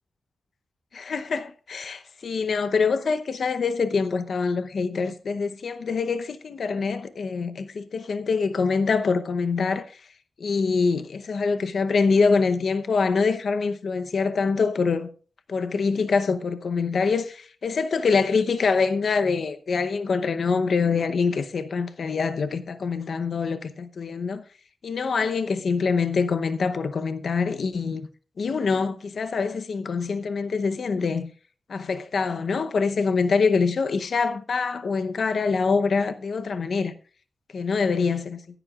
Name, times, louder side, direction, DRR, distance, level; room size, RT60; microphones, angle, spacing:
voice 1, 0.9-10.0 10.4-15.1 15.5-24.4 24.8-28.1 28.4-31.3 31.7-36.9 37.5-38.4, left 4 dB, 70° left, 0.8 m, -25 dB
16.0 x 10.0 x 2.4 m
cardioid pair, 75°, 0 cm